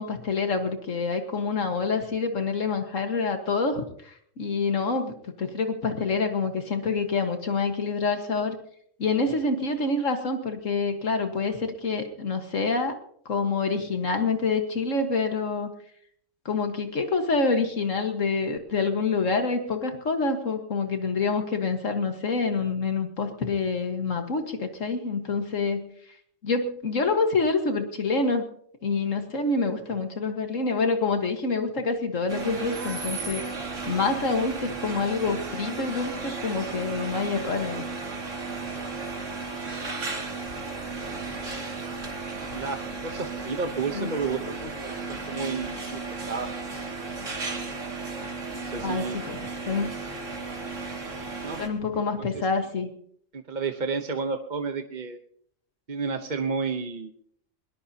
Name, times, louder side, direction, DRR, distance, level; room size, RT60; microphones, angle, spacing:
voice 1, 0.0-8.6 9.0-13.0 13.3-15.7 16.5-25.8 26.4-28.4 28.8-33.4 33.9-37.9 43.9-44.1 48.8-49.4 49.7-49.9 51.6-52.9, left 4 dB, 70° left, 6 dB, 1.9 m, -27 dB
sound 1, 32.3-51.7, right 3 dB, 65° right, 2.7 m, -34 dB
voice 2, 42.5-46.5 48.5-49.2 51.4-51.6 51.9-52.0 53.3-55.2 55.9-57.1, right 5 dB, 40° right, 6 dB, 1.0 m, -31 dB
21.5 x 20.5 x 2.9 m, 0.64 s
omnidirectional pair, 1.4 m